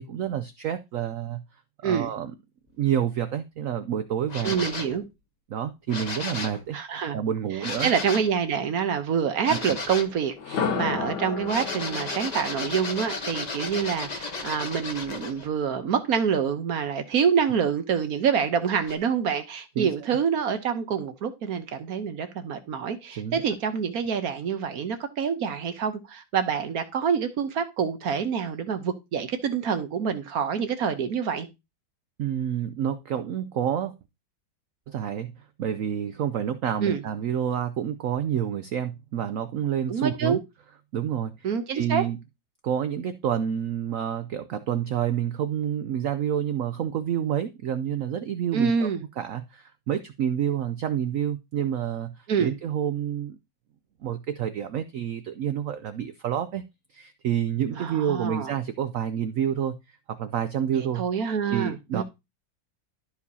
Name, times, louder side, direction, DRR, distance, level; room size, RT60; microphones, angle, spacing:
voice 1, 0.0-1.4 1.8-2.3 2.8-4.6 5.5-6.8 7.1-7.9 9.5-9.6 19.8-19.9 23.1-23.4 32.2-34.0 34.9-40.4 40.9-41.5 41.7-42.2 42.6-53.4 54.0-56.6 56.9-61.0 61.5-62.0, right 9 dB, 85° right, 0.7 m, -28 dB
sound 1, 4.3-5.0 5.9-6.6 7.6-8.3 9.4-10.1 11.4-15.5 18.8-19.0, left 3 dB, 30° left, 0.8 m, -34 dB
voice 2, 4.4-5.0 6.7-7.2 7.8-31.5 36.8-37.0 39.9-40.4 41.4-42.0 48.5-49.0 52.3-52.5 57.8-58.5 60.7-62.0, right 7 dB, 60° right, 1.2 m, -26 dB
sound 2, 10.4-14.3, left 5 dB, 65° left, 1.7 m, -33 dB
13.0 x 4.6 x 2.7 m
omnidirectional pair, 2.1 m